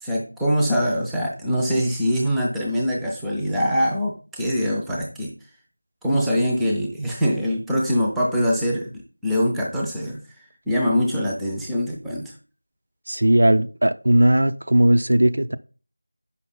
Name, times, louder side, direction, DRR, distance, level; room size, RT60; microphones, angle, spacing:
voice 1, 0.0-5.3 6.0-10.2 10.7-12.3, equal, ahead, 0.6 m, -23 dB
voice 2, 13.1-15.6, right 1 dB, 60° right, 0.5 m, -18 dB
6.1 x 5.7 x 3.6 m
figure-of-eight pair, 170°, 0 cm